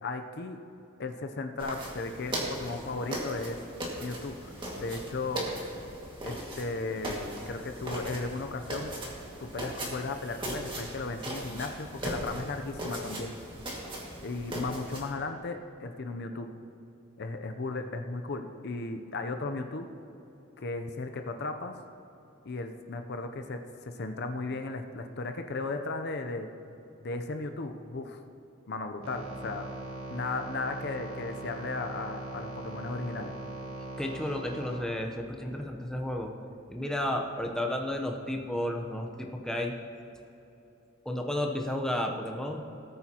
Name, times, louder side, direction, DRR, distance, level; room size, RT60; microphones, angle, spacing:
voice 1, 0.0-0.6 1.0-3.6 4.0-5.5 6.2-8.9 9.4-13.3 14.2-16.5 17.2-19.9 20.6-21.7 22.4-26.5 27.0-28.2 28.7-29.7 30.1-33.3, left 3 dB, 50° left, 6 dB, 0.6 m, -36 dB
sound 1, 1.6-15.1, right 1 dB, 25° right, 1.9 m, -38 dB
sound 2, 29.0-34.8, right 2 dB, 75° right, 1.5 m, -40 dB
voice 2, 34.0-36.3 36.7-39.8 41.0-42.6, left 1 dB, 5° left, 2 dB, 0.7 m, -32 dB
18.5 x 9.0 x 2.9 m, 2.9 s
head